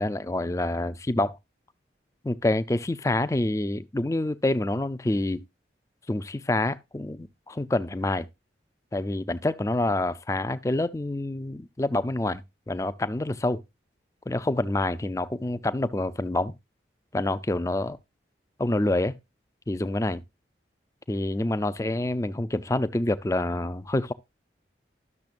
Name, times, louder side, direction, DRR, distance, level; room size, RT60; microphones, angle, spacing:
voice 1, 0.0-1.4 2.2-5.4 6.1-8.3 8.9-13.6 14.3-16.5 17.1-18.0 18.6-19.1 19.7-20.2 21.1-24.1, left 2 dB, 15° left, 0.4 m, -27 dB
12.0 x 6.6 x 2.5 m
head